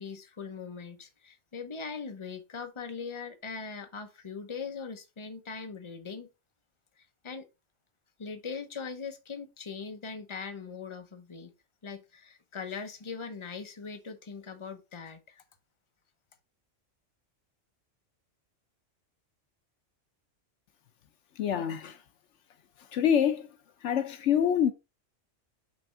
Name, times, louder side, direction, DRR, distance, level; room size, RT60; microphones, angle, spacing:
voice 1, 0.0-6.3 7.0-7.5 8.2-11.5 11.8-15.4, left 5 dB, 25° left, 0.9 m, -40 dB
voice 2, 21.4-22.0 22.8-24.7, left 9 dB, 75° left, 1.0 m, -27 dB
6.3 x 3.4 x 6.0 m
omnidirectional pair, 1.3 m